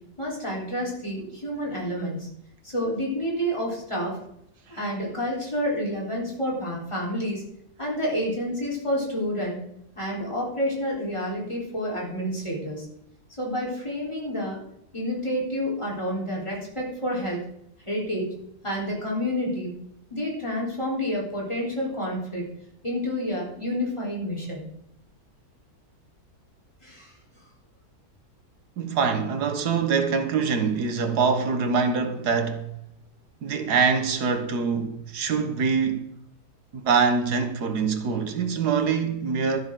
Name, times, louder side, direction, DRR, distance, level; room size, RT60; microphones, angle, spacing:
voice 1, 0.2-2.3 2.6-4.2 4.7-7.4 7.8-9.6 10.0-12.9 13.4-14.6 14.9-17.4 17.8-18.3 18.6-19.7 20.1-22.5 22.8-24.7 26.8-27.1, equal, 20° left, 3.9 m, -29 dB
voice 2, 28.8-32.7 33.4-36.1 36.7-39.6, right 5 dB, 90° right, 1.7 m, -24 dB
12.5 x 12.0 x 3.8 m
omnidirectional pair, 1.7 m